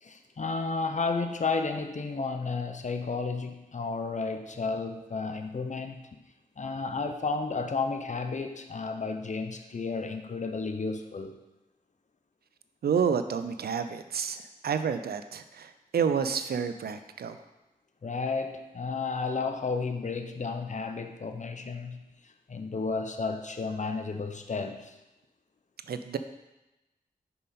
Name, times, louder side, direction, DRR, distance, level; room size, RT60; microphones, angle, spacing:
voice 1, 0.0-6.0 6.6-11.4 18.0-25.0, left 4 dB, 50° left, 7 dB, 0.7 m, -32 dB
voice 2, 12.8-17.4 25.9-26.2, right 7 dB, 85° right, 10 dB, 0.4 m, -29 dB
5.5 x 5.2 x 4.2 m, 1.0 s
cardioid pair, 50°, 16 cm